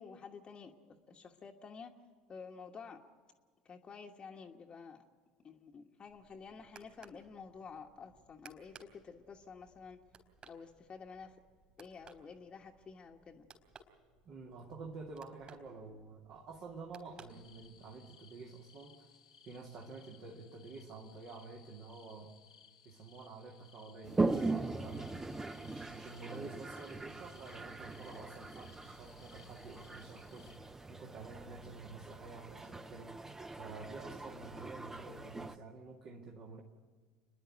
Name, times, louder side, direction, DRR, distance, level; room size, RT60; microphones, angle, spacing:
voice 1, 0.0-1.9 2.3-3.0 3.6-5.0 5.4-10.0 10.4-11.3 11.8-13.5, left 5 dB, 30° left, 1 dB, 1.3 m, -51 dB
sound 1, 6.1-18.0, right 4 dB, 35° right, 3.8 m, -61 dB
voice 2, 14.2-19.1 19.4-22.3 22.8-25.2 25.6-30.5 30.9-33.2 33.5-36.6, right 4 dB, 50° right, -1 dB, 2.1 m, -49 dB
sound 2, 17.3-30.6, left 7 dB, 85° left, 0.9 m, -63 dB
Toilet flush, 24.0-35.6, right 3 dB, 15° right, 0.8 m, -40 dB
29.0 x 11.0 x 9.3 m, 1.5 s
figure-of-eight pair, 70°, 3 cm